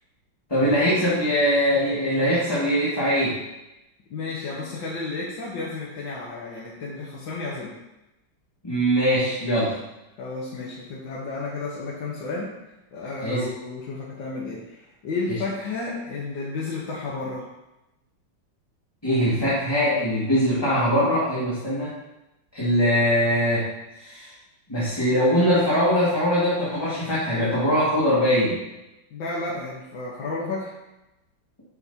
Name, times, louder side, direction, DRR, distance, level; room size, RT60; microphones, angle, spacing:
voice 1, 0.5-3.4 8.6-9.8 13.2-13.4 15.3-15.4 19.0-21.9 22.5-23.7 24.0-24.3 24.7-28.6, equal, 15° left, -10 dB, 1.8 m, -22 dB
voice 2, 4.1-7.7 10.2-12.5 12.9-17.5 29.1-30.7, left 3 dB, 70° left, -6 dB, 1.8 m, -32 dB
8.3 x 5.9 x 2.8 m, 0.96 s
omnidirectional pair, 2.0 m